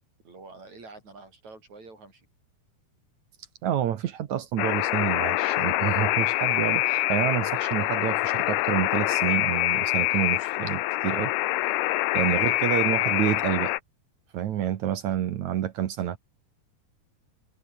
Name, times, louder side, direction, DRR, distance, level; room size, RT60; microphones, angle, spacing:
voice 1, 0.3-2.3 12.4-12.6, right 3 dB, 45° right, 8.5 m, -47 dB
voice 2, 3.6-11.3 12.1-13.8 14.3-16.2, right 11 dB, 60° right, 2.1 m, -28 dB
Alarm, 4.6-13.8, left 18 dB, 85° left, 2.8 m, -25 dB
omnidirectional pair, 4.5 m